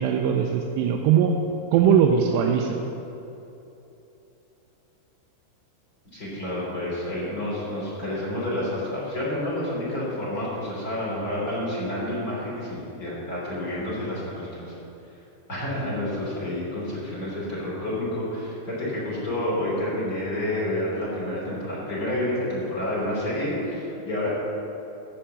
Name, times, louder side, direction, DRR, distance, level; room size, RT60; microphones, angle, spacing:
voice 1, 0.0-1.4 1.7-2.8, right 8 dB, 85° right, 2 dB, 2.8 m, -20 dB
voice 2, 6.1-14.7 15.5-24.3, left 1 dB, 25° left, -7 dB, 3.1 m, -29 dB
14.5 x 5.8 x 7.6 m, 2.9 s
omnidirectional pair, 4.8 m